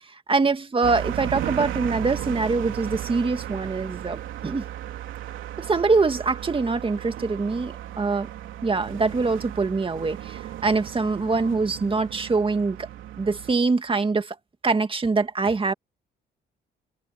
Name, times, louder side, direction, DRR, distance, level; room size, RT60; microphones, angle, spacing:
voice 1, 0.3-4.7 5.6-8.3 8.6-12.9 13.2-14.4 14.6-15.7, right 4 dB, 25° right, 2.1 m, -24 dB
sound 1, 0.8-13.5, right 12 dB, 85° right, 3.1 m, -35 dB
open air
cardioid pair, 90°, 20 cm